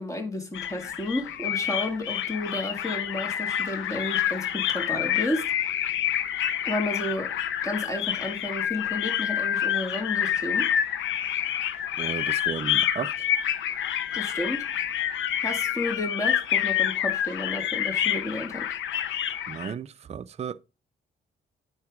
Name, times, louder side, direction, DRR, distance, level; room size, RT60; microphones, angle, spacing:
voice 1, 0.0-5.4 6.6-7.3 7.6-10.7 14.1-14.6 15.4-18.7, left 1 dB, 15° left, 1.9 m, -32 dB
sound 1, 0.5-19.7, left 10 dB, 75° left, 0.8 m, -28 dB
voice 2, 12.0-13.1 19.5-20.6, right 7 dB, 35° right, 0.4 m, -34 dB
9.5 x 4.7 x 3.6 m
cardioid pair, 90°, 20 cm